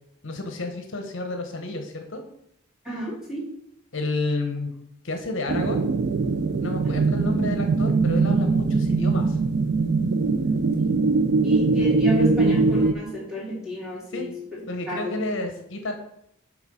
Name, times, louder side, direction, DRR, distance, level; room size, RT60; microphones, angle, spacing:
voice 1, 0.2-2.2 3.9-4.7 5.0-5.9 6.6-9.4 14.1-14.3 14.7-15.9, left 2 dB, 65° left, 5 dB, 0.9 m, -30 dB
voice 2, 2.8-3.5 10.8-10.9 11.4-14.3 14.9-15.2, right 1 dB, 5° right, -5 dB, 2.5 m, -31 dB
sound 1, 5.5-12.9, right 3 dB, 55° right, 0.4 m, -21 dB
8.2 x 3.6 x 5.3 m, 0.76 s
head